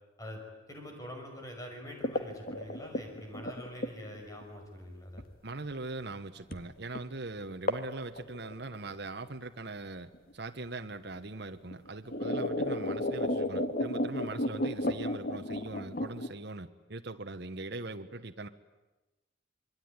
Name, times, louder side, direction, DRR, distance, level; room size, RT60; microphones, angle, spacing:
voice 1, 0.7-5.2, equal, 20° left, 2 dB, 5.9 m, -45 dB
sound 1, 2.0-4.4 5.2-5.3 6.5-6.7 7.0-7.1 7.7-7.9 8.2-9.0 10.1-10.2 11.2-11.3 11.7-16.3, left 1 dB, 50° left, 1.8 m, -33 dB
voice 2, 5.4-18.5, right 2 dB, 55° right, 6 dB, 1.2 m, -41 dB
27.0 x 23.0 x 9.7 m, 1.1 s
head